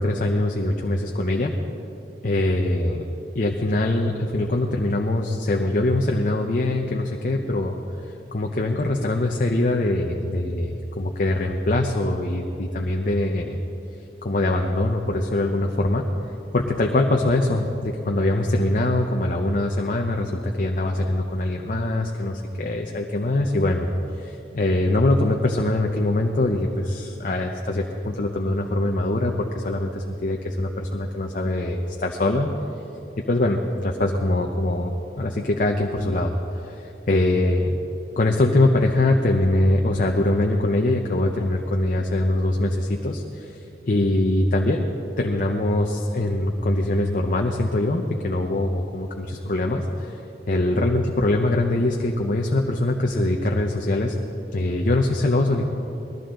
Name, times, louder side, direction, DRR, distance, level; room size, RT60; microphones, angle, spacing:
voice 1, 0.0-1.5 2.2-3.1 3.3-7.7 8.3-13.6 14.2-16.0 16.5-23.9 24.2-32.5 33.3-36.4 36.6-37.8 38.2-44.9 45.2-50.2 50.5-54.1 54.5-55.7, left 1 dB, 50° left, 1 dB, 0.8 m, -23 dB
20.0 x 14.5 x 3.8 m, 2.9 s
head